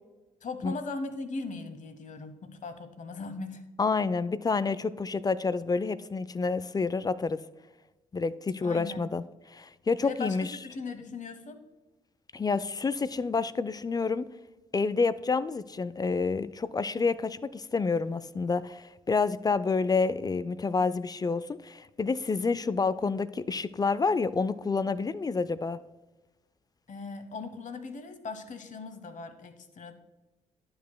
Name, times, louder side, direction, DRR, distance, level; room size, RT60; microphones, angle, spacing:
voice 1, 0.4-3.6 8.6-9.1 10.0-11.6 26.9-29.9, left 3 dB, 45° left, 9 dB, 1.0 m, -39 dB
voice 2, 3.8-7.4 8.1-10.6 12.3-14.3 14.7-25.8, left 4 dB, 25° left, 16 dB, 0.4 m, -28 dB
12.0 x 5.1 x 2.2 m, 1.1 s
hypercardioid pair, 40°, 17 cm